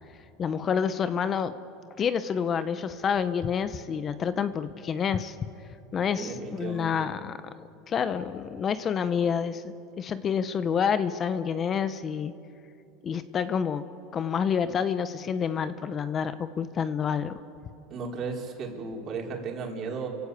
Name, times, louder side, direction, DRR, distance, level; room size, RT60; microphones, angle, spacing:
voice 1, 0.4-1.5 2.0-5.4 5.9-7.4 7.9-12.3 13.0-13.8 14.1-17.4, left 7 dB, 35° left, 12 dB, 0.9 m, -28 dB
voice 2, 6.2-7.1 17.9-20.1, right 4 dB, 45° right, 1 dB, 4.6 m, -35 dB
29.5 x 16.0 x 8.5 m, 2.6 s
supercardioid pair, 115°, 0 cm